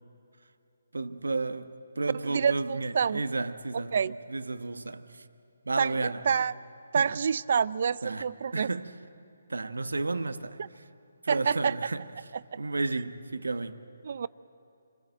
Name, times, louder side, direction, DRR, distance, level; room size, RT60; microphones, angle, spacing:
voice 1, 0.9-5.2 5.6-6.4 6.9-7.1 8.0-8.3 8.5-8.9 9.5-10.6 11.2-12.1 12.5-13.8, right 3 dB, 85° right, 1.2 m, -32 dB
voice 2, 2.3-3.2 3.9-4.1 5.8-6.5 6.9-8.7 11.3-11.8 12.5-12.6 14.0-14.3, right 6 dB, 55° right, 0.5 m, -27 dB
27.5 x 21.0 x 7.8 m
figure-of-eight pair, 150°, 0 cm